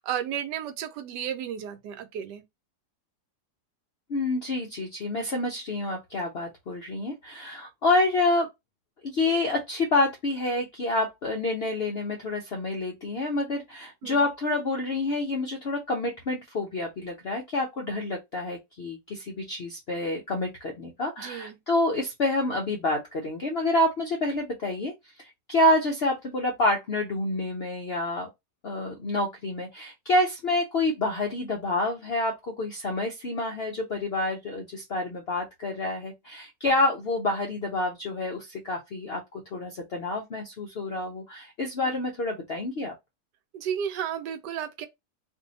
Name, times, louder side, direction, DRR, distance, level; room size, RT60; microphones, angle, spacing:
voice 1, 0.0-2.4 14.0-14.2 21.2-21.6 41.8-42.0 43.5-44.9, right 9 dB, 85° right, 1.2 m, -33 dB
voice 2, 4.1-8.5 9.0-24.9 25.2-28.3 28.6-42.9, left 2 dB, 70° left, 0.5 m, -28 dB
2.7 x 2.6 x 3.9 m
omnidirectional pair, 1.8 m